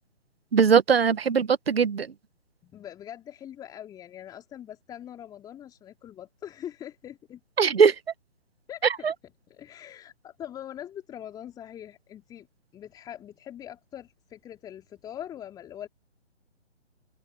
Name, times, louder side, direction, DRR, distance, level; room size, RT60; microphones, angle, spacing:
voice 1, 0.5-2.1 7.6-7.9 9.0-9.1, right 6 dB, 55° right, 1.5 m, -20 dB
voice 2, 2.6-7.4 8.7-12.5 12.7-15.9, left 10 dB, 10° left, 3.1 m, -42 dB
open air
figure-of-eight pair, 140°, 35 cm